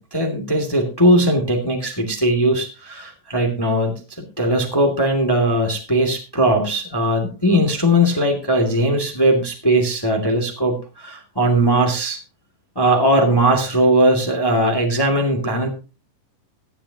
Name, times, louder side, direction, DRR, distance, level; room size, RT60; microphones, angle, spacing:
voice 1, 0.0-3.9 4.4-12.2 12.7-15.7, right 1 dB, 10° left, 1 dB, 1.5 m, -19 dB
16.5 x 10.5 x 2.9 m, 0.32 s
omnidirectional pair, 4.1 m